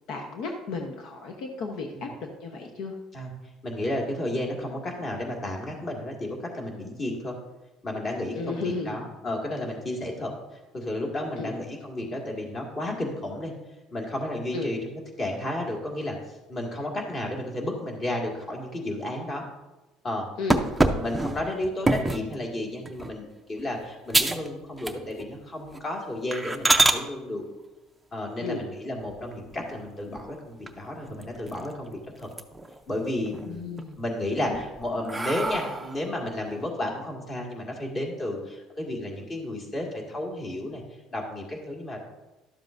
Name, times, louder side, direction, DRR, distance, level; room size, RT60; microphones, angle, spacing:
voice 1, 0.1-2.9 8.3-9.0 11.4-11.5 14.5-14.7 20.4-20.7 28.4-28.7 33.5-34.0 34.3-34.6, left 3 dB, 65° left, 2 dB, 0.9 m, -34 dB
voice 2, 3.6-7.4 7.8-10.3 10.7-13.5 13.9-19.4 20.0-20.3 20.8-27.4 28.1-32.3 32.9-33.7 34.0-40.8 41.1-42.0, left 1 dB, 30° left, 0 dB, 2.0 m, -32 dB
sound 1, 20.5-22.3 22.9-23.2 23.6-23.7 24.1-24.5 24.8-25.3 25.7-25.8 26.3-27.0 29.0-29.7 30.2-30.3 30.7-30.8 31.0-31.8 32.2-32.8 33.2-33.8 34.4-36.1, right 2 dB, 10° right, 0.5 m, -26 dB
12.0 x 7.4 x 2.6 m, 1.1 s
cardioid pair, 120°, 0 cm